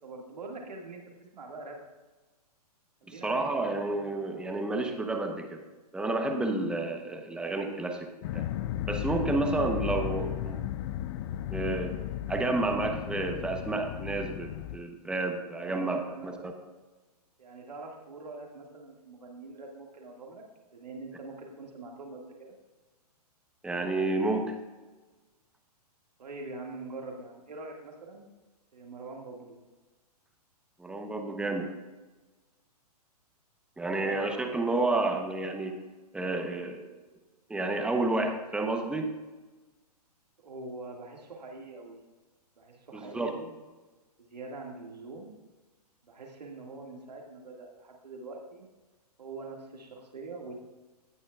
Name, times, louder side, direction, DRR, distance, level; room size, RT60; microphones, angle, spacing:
voice 1, 0.0-1.0 1.3-1.8 3.0-3.8 15.6-16.3 16.6-16.7 17.4-20.4 20.7-22.5 26.2-28.3 28.7-29.6 31.2-31.5 33.8-34.5 40.4-42.0 42.6-43.5 44.3-45.3 46.0-48.7 49.2-50.6, right 3 dB, 85° right, 0 dB, 2.0 m, -44 dB
voice 2, 3.1-5.6 5.9-8.5 8.9-10.7 11.5-12.0 12.3-16.4 23.6-24.6 30.8-31.7 33.8-35.8 36.1-36.8 37.5-39.1 42.9-43.3, right 2 dB, 5° right, 4 dB, 0.8 m, -30 dB
sound 1, 8.2-14.8, left 12 dB, 45° left, 0.4 m, -35 dB
17.5 x 6.5 x 2.4 m, 1.2 s
hypercardioid pair, 130°, 21 cm